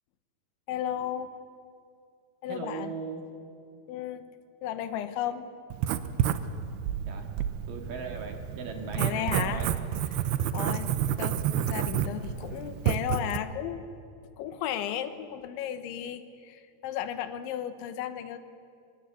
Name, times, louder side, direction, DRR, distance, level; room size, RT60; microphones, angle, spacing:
voice 1, 0.7-1.3 2.4-2.9 3.9-4.2 4.6-5.5 9.0-9.7 10.1-10.9 11.2-13.8 14.4-18.4, left 10 dB, 85° left, 11 dB, 3.4 m, -34 dB
voice 2, 2.5-3.2 7.0-7.3 7.7-9.7, right 4 dB, 55° right, 4 dB, 2.9 m, -38 dB
Writing, 5.7-13.4, right 10 dB, 80° right, 2.6 m, -30 dB
25.0 x 22.5 x 8.4 m, 2.4 s
omnidirectional pair, 5.3 m